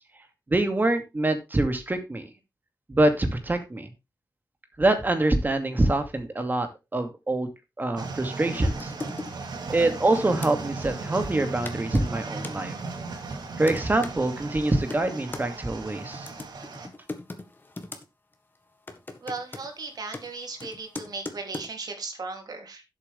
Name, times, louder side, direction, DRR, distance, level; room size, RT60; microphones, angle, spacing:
voice 1, 0.5-2.3 2.9-3.9 4.8-7.5 7.8-8.9 9.7-12.7 13.6-16.3, right 2 dB, 25° right, 7 dB, 2.4 m, -25 dB
sound 1, 8.0-16.9, right 4 dB, 85° right, 2.3 m, -37 dB
sound 2, 8.6-10.5 11.3-11.4 11.6-12.6 13.2-14.1 14.6-15.5 16.1-18.0 18.3-18.6 18.9-21.7, left 2 dB, 30° left, 1.7 m, -40 dB
voice 2, 19.2-22.8, right 3 dB, 65° right, 4 dB, 3.0 m, -36 dB
11.0 x 8.1 x 3.4 m, 0.24 s
wide cardioid pair, 105°, 7 cm